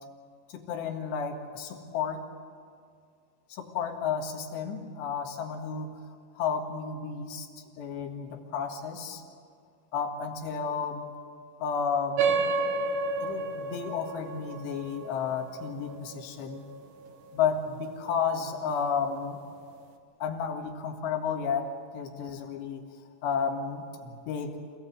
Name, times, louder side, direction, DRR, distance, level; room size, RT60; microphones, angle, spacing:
voice 1, 0.5-2.2 3.5-6.0 6.4-7.5 7.8-9.2 9.9-11.1 11.6-12.4 13.2-16.7 17.3-19.4 20.2-22.8 23.2-24.8, left 6 dB, 75° left, 3 dB, 3.8 m, -32 dB
sound 1, 12.2-17.1, right 4 dB, 65° right, 2.0 m, -31 dB
27.0 x 18.0 x 8.1 m, 2.2 s
omnidirectional pair, 5.2 m